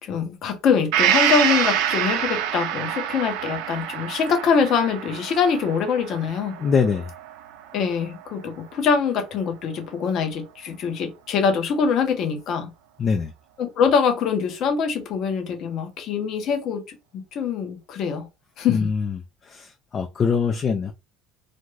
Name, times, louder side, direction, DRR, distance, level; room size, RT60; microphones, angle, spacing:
voice 1, 0.0-6.6 7.7-12.7 13.6-18.3 18.6-18.9, left 6 dB, 50° left, 0.7 m, -24 dB
Gong, 0.9-8.6 8.9-9.0, right 10 dB, 80° right, 0.5 m, -26 dB
voice 2, 6.6-7.1 13.0-13.3 18.7-20.9, left 5 dB, 30° left, 0.3 m, -23 dB
2.5 x 2.3 x 3.1 m
cardioid pair, 140°, 0 cm